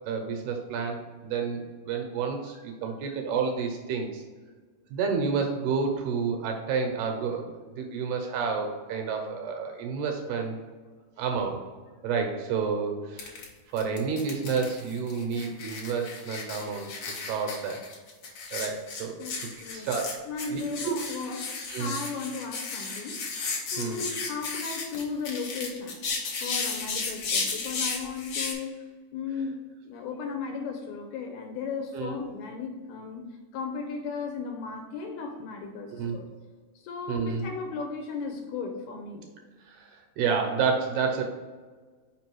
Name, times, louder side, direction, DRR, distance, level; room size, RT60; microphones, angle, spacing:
voice 1, 0.1-4.2 4.9-7.5 7.8-10.6 11.2-11.6 12.0-13.4 13.7-16.9 17.3-17.8 18.5-20.1 20.5-21.0 21.7-21.9 23.8-24.0 26.3-26.6 31.9-32.1 35.9-36.2 37.1-37.5 39.7-41.2, right 5 dB, 75° right, 3 dB, 2.5 m, -30 dB
sound 1, 13.2-13.5 13.8-28.5, left 4 dB, 60° left, 1.8 m, -34 dB
voice 2, 20.3-21.5 21.8-23.2 23.7-26.0 26.4-28.8 29.1-29.6 29.9-36.3 36.8-39.3, left 4 dB, 80° left, 3 dB, 2.5 m, -35 dB
6.0 x 5.0 x 4.5 m, 1.4 s
omnidirectional pair, 4.9 m